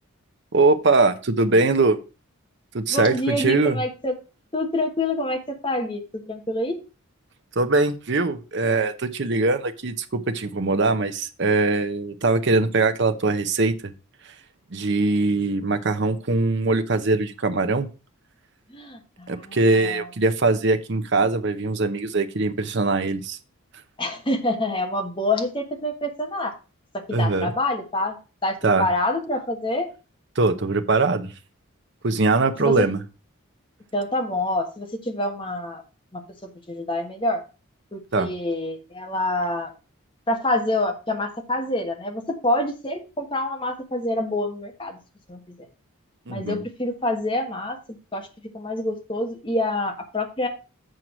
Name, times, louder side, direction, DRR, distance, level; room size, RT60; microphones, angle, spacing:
voice 1, 0.5-2.0 2.7-3.8 7.6-13.9 14.7-17.9 19.3-23.4 27.1-27.5 28.6-28.9 30.4-31.3 32.0-33.0 38.1-38.3 46.3-46.6, right 3 dB, 50° right, 9 dB, 0.7 m, -22 dB
voice 2, 2.9-4.1 4.5-6.8 18.7-20.1 24.0-26.5 26.9-29.9 32.6-32.9 33.9-35.8 36.1-37.4 37.9-39.7 40.3-45.0 45.3-45.7 46.3-47.8 48.1-48.3 48.5-50.5, left 1 dB, 25° left, 3 dB, 1.3 m, -27 dB
7.7 x 4.7 x 5.9 m, 0.32 s
head